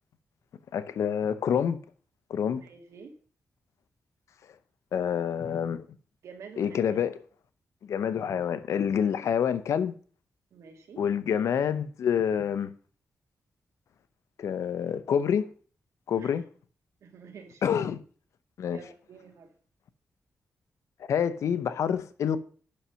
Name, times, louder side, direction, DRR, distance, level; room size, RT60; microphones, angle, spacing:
voice 1, 0.7-1.8 2.3-2.6 4.9-5.9 6.6-7.2 7.8-9.9 11.0-12.7 14.4-15.5 16.1-16.4 17.6-18.0 18.6-18.8 21.1-22.4, left 8 dB, 85° left, 0.7 m, -27 dB
voice 2, 2.5-3.2 6.2-7.0 10.5-11.0 16.2-16.4 17.0-17.7 18.7-19.5, right 5 dB, 85° right, 1.8 m, -48 dB
8.7 x 6.3 x 5.6 m
cardioid pair, 85°, 5 cm